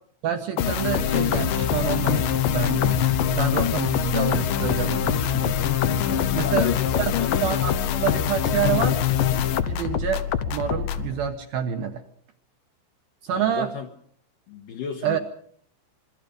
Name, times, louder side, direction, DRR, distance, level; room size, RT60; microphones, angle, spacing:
voice 1, 0.2-5.7 6.3-6.7 7.4-9.0 9.6-10.2 10.5-12.0 13.2-13.7 15.0-15.2, right 8 dB, 70° right, 6 dB, 2.4 m, -27 dB
sound 1, 0.6-11.1, left 9 dB, 90° left, 1.9 m, -24 dB
sound 2, 1.2-11.3, right 2 dB, 85° right, 6.6 m, -41 dB
voice 2, 6.1-7.4 9.6-9.9 13.3-13.9 14.5-15.2, left 7 dB, 65° left, 5 dB, 2.3 m, -34 dB
27.0 x 22.5 x 5.2 m, 0.62 s
omnidirectional pair, 5.5 m